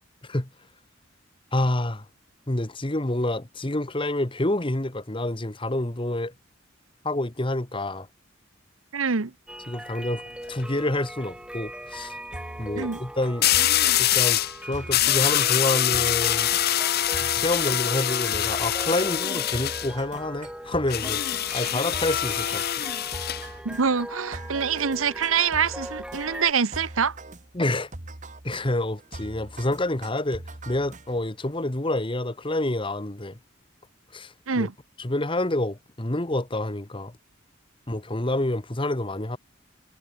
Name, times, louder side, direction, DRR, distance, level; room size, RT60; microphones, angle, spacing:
voice 1, 1.5-2.1 2.5-6.3 7.0-8.1 9.7-10.2 10.5-12.2 12.6-13.5 14.0-16.5 17.2-21.2 21.5-22.6 27.5-27.9 28.4-33.4 34.1-34.7 35.0-37.2 37.9-39.4, left 1 dB, 25° left, 1.3 m, -28 dB
voice 2, 8.9-9.3 12.7-13.0 23.6-27.2 34.5-34.7, right 6 dB, 85° right, 1.0 m, -25 dB
sound 1, 9.5-26.5, right 1 dB, 5° right, 5.0 m, -40 dB
sound 2, 10.3-10.6 13.4-14.6 14.9-19.9 20.9-23.5, left 12 dB, 50° left, 0.8 m, -24 dB
sound 3, 12.3-31.4, right 2 dB, 35° right, 1.8 m, -43 dB
head